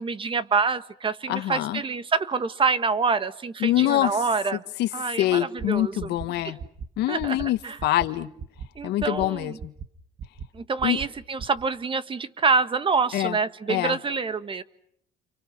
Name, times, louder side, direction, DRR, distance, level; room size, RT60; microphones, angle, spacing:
voice 1, 0.0-4.6 4.9-6.1 6.4-6.5 7.1-7.4 7.6-7.8 8.8-9.5 10.5-14.6, right 4 dB, 30° right, 12 dB, 1.8 m, -26 dB
voice 2, 1.3-1.8 3.6-4.2 4.8-4.9 5.2-6.6 7.0-8.3 8.8-9.7 10.8-11.0 13.1-13.4 13.7-14.0, left 14 dB, 80° left, 11 dB, 1.7 m, -25 dB
sound 1, 5.6-5.7 6.0-6.3 6.6-6.9 7.2-7.5 7.8-8.1 8.4-8.7 9.0-9.3 9.6-9.9 10.2-10.5 10.8-11.1 11.4-11.6, right 6 dB, 50° right, 2.0 m, -37 dB
30.0 x 29.5 x 6.2 m, 0.68 s
cardioid pair, 110°, 17 cm